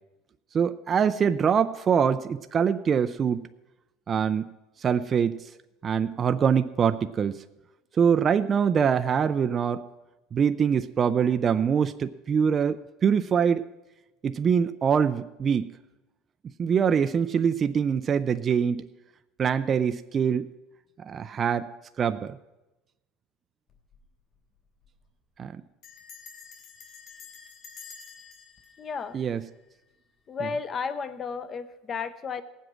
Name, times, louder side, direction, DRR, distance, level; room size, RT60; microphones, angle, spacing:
voice 1, 0.5-3.5 4.1-4.5 4.8-5.4 5.8-7.4 8.0-9.8 10.3-13.6 14.2-15.7 16.6-18.8 19.4-20.5 21.0-21.7 22.0-22.4 25.4-25.5 29.1-29.4, right 7 dB, 30° right, 10 dB, 0.4 m, -24 dB
Bell, 23.7-24.1 24.3-24.4 24.7-25.0 25.8-29.9, left 5 dB, 45° left, 3.4 m, -49 dB
voice 2, 28.8-29.2 30.3-32.4, left 5 dB, 30° left, 13 dB, 0.8 m, -33 dB
18.0 x 7.8 x 6.2 m, 1.0 s
cardioid pair, 135°, 0 cm